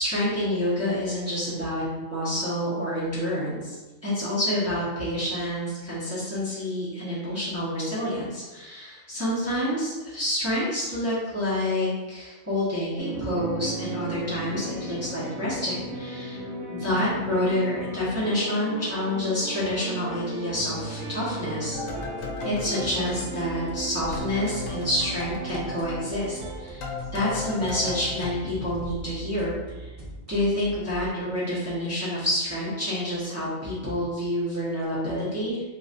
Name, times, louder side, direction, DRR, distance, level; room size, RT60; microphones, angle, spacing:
voice 1, 0.0-3.8 4.0-16.4 16.7-21.8 22.4-29.9 30.3-35.6, left 1 dB, 10° right, -11 dB, 1.0 m, -28 dB
sound 1, 13.0-26.7, right 2 dB, 90° right, 1.1 m, -36 dB
sound 2, 21.7-23.9 24.1-28.3, left 4 dB, 75° left, 1.0 m, -36 dB
sound 3, 21.7-31.1, right 1 dB, 70° right, 0.3 m, -42 dB
3.9 x 2.8 x 2.6 m, 1.2 s
omnidirectional pair, 1.4 m